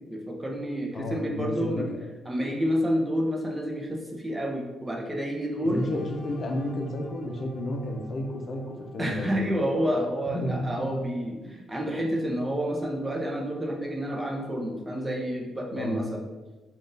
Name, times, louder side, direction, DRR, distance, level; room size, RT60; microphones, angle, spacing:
voice 1, 0.1-1.8 2.3-5.9 9.0-16.2, equal, 15° right, -1 dB, 0.7 m, -29 dB
voice 2, 0.9-1.8 5.6-9.5 10.3-10.9 15.8-16.0, left 1 dB, 50° left, 1 dB, 0.6 m, -32 dB
sound 1, 5.7-10.7, equal, 15° left, 1.0 m, -49 dB
3.6 x 2.5 x 3.9 m, 1.2 s
cardioid pair, 90°, 0 cm